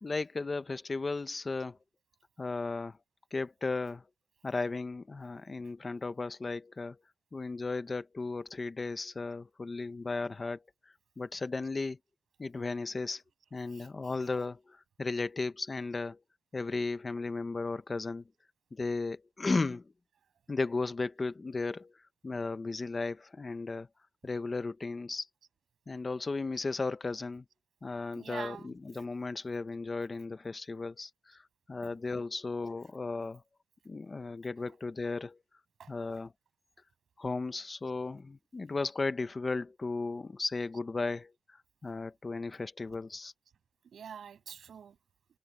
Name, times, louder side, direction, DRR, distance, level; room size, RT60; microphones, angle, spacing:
voice 1, 0.0-1.8 2.4-3.0 3.3-4.0 4.4-7.0 7.3-10.6 11.2-12.0 12.4-13.2 13.5-16.2 16.5-18.3 18.7-19.9 20.5-21.9 22.2-23.9 24.2-25.3 25.9-27.4 27.8-33.4 33.8-35.4 35.9-36.3 37.2-43.3, left 3 dB, 30° left, 0.9 m, -35 dB
voice 2, 13.7-14.2 28.1-28.7 31.8-31.9 33.2-33.3 35.8-35.9 43.9-45.0, right 7 dB, 85° right, 7.5 m, -46 dB
wide cardioid pair, 170°, 0 cm